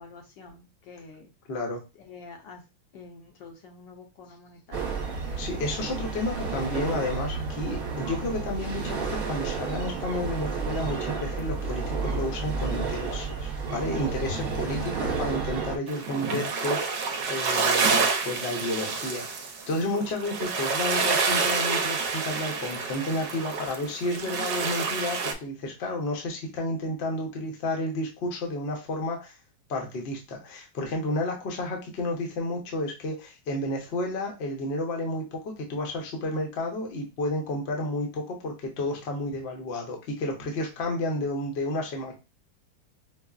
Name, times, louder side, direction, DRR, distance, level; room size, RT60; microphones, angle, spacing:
voice 1, 0.0-1.3 1.9-2.7 2.9-4.9 14.7-14.9, left 4 dB, 75° left, 2 dB, 1.5 m, -47 dB
voice 2, 1.5-1.8 5.4-14.8 15.2-29.3 29.7-42.1, left 1 dB, 50° left, 1 dB, 0.8 m, -31 dB
sound 1, 4.7-15.8, right 4 dB, 55° right, 1.3 m, -31 dB
sound 2, 15.9-25.3, right 5 dB, 75° right, 1.1 m, -28 dB
5.2 x 2.0 x 2.4 m, 0.27 s
omnidirectional pair, 2.0 m